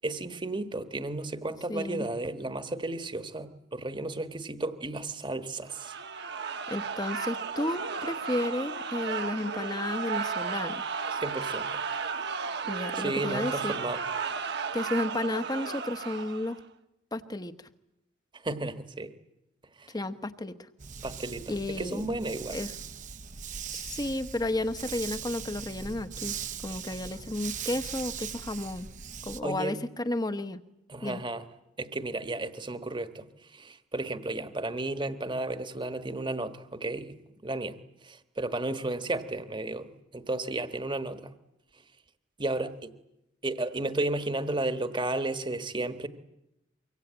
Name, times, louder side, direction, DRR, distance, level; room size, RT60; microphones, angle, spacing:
voice 1, 0.0-5.9 11.1-11.7 12.9-14.0 18.4-19.1 19.8-19.9 21.0-22.6 29.4-29.8 30.9-31.4 31.8-33.3 33.5-37.2 37.4-37.8 38.0-41.3 42.4-42.9 43.4-46.1, right 2 dB, 25° right, 10 dB, 1.4 m, -33 dB
voice 2, 1.7-2.1 6.7-10.8 12.7-13.7 14.7-16.6 17.1-17.5 19.9-20.5 21.5-22.0 22.5-22.7 23.7-26.4 26.6-28.9 29.2-30.6 31.0-31.2, left 1 dB, 20° left, 11 dB, 1.0 m, -32 dB
sound 1, 5.7-16.6, right 5 dB, 60° right, 1.2 m, -34 dB
Dog, 20.8-29.4, right 7 dB, 40° right, 0.9 m, -40 dB
24.5 x 24.0 x 9.0 m, 0.88 s
head